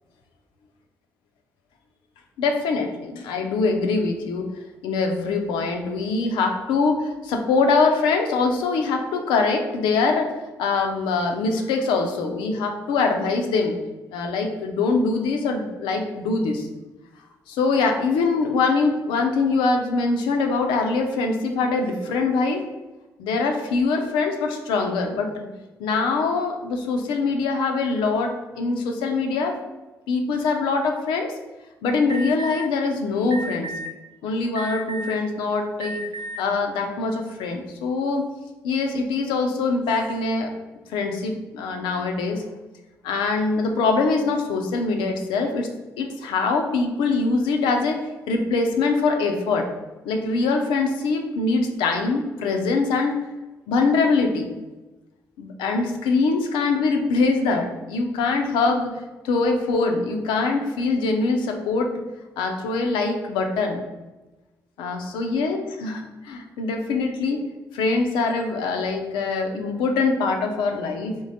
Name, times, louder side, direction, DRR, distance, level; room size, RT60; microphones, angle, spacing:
voice 1, 2.4-4.5 4.8-10.3 10.6-13.8 14.1-16.7 17.5-22.6 23.2-25.5 25.8-29.6 30.1-31.3 31.8-33.7 34.2-36.0 36.4-38.2 38.6-40.5 40.9-42.4 43.0-45.7 46.0-48.0 48.3-49.7 50.0-53.1 53.7-54.5 55.4-58.9 59.2-62.0 62.4-63.8 64.8-67.4 67.7-71.2, left 4 dB, 85° left, 4 dB, 0.6 m, -23 dB
Alarm, 32.1-32.6 33.3-33.9 34.6-35.2 35.8-36.4, right 2 dB, 75° right, 0.8 m, -33 dB
3.7 x 3.2 x 4.0 m, 1.1 s
hypercardioid pair, 45°, 8 cm